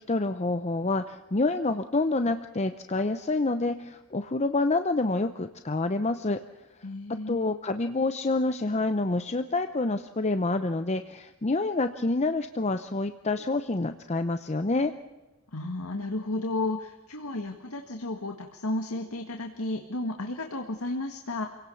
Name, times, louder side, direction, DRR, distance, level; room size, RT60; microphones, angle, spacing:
voice 1, 0.1-6.4 7.3-14.9, left 2 dB, 30° left, 9 dB, 0.7 m, -27 dB
voice 2, 6.8-7.6 15.5-21.5, left 2 dB, 85° left, 4 dB, 1.8 m, -33 dB
28.0 x 17.5 x 7.1 m, 1.1 s
head